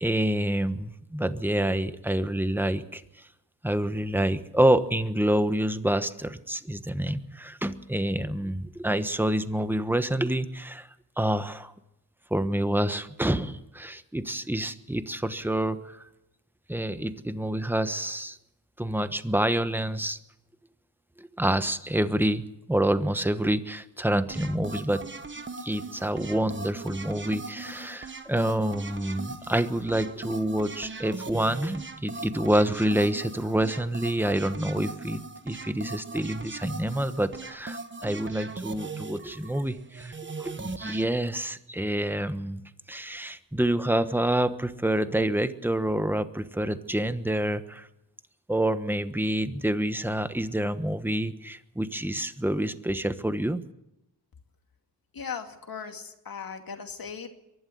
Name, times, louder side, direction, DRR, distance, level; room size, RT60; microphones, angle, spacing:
voice 1, 0.0-3.0 3.6-10.9 11.2-11.7 12.3-16.0 16.7-18.4 18.8-20.2 21.2-25.0 25.6-42.6 42.9-47.9 48.5-53.6, right 1 dB, 5° right, 11 dB, 1.2 m, -27 dB
sound 1, 24.3-41.1, right 3 dB, 30° right, 1.2 m, -39 dB
voice 2, 55.1-57.3, left 6 dB, 55° left, 5 dB, 2.6 m, -38 dB
23.5 x 11.5 x 9.4 m, 0.89 s
cardioid pair, 85°, 40 cm